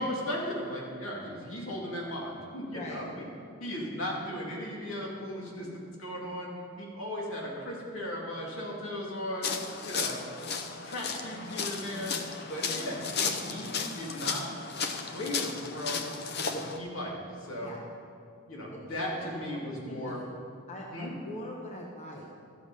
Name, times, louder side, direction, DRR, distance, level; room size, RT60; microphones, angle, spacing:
voice 1, 0.0-3.3 3.6-6.5 6.8-9.5 9.8-10.2 10.7-12.1 12.5-14.5 15.0-16.0 16.4-17.1 17.4-17.7 18.5-20.2 20.9-21.1, equal, 75° left, -3 dB, 2.5 m, -36 dB
sound 1, 9.4-16.8, left 5 dB, 50° left, 0.6 m, -34 dB
voice 2, 19.1-20.3 20.7-22.3, left 1 dB, 30° left, -1 dB, 0.9 m, -42 dB
13.0 x 6.8 x 5.5 m, 2.5 s
head